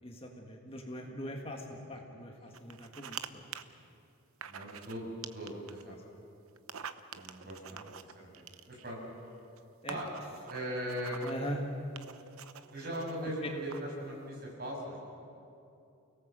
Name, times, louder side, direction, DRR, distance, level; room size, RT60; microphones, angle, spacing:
voice 1, 0.0-3.5 5.9-6.0 8.0-8.1 9.8-10.0 11.2-11.6 13.4-13.5, equal, 25° left, 1 dB, 1.8 m, -41 dB
sound 1, 2.5-3.3 3.5-3.6 4.4-5.0 5.2-5.8 6.6-8.9 9.6-9.7 9.9-11.5 12.0-13.1 13.7-14.0, right 8 dB, 75° right, 0.9 m, -45 dB
voice 2, 4.5-6.0 7.1-7.8 8.1-9.0 9.9-10.1 10.5-11.2 12.7-15.0, equal, 45° right, -2 dB, 6.7 m, -39 dB
29.5 x 18.0 x 7.6 m, 2.7 s
head